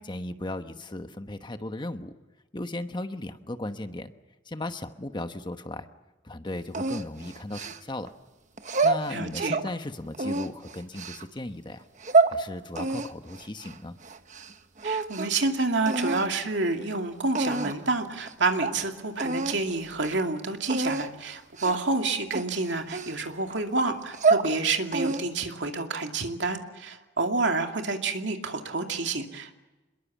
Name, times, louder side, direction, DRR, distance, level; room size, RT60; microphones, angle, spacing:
voice 1, 0.0-2.1 2.5-4.1 4.5-5.9 6.2-8.1 8.8-11.8 12.3-14.0, left 1 dB, 25° left, 8 dB, 1.1 m, -36 dB
sound 1, 6.7-8.1 8.6-9.7 10.1-11.2 11.8-12.4 12.8-14.5 14.8-15.4 15.9-16.3 16.9-17.0 17.3-17.9 18.3-18.4 18.6-18.8 19.2-19.6 19.9-20.2 20.7-21.1 21.6-21.9 22.3-23.5 24.0-24.5 24.9-25.4, right 3 dB, 40° right, 1.2 m, -27 dB
voice 2, 9.1-9.6 14.8-29.6, right 3 dB, 70° right, 4 dB, 2.5 m, -28 dB
26.5 x 22.0 x 7.4 m, 1.1 s
head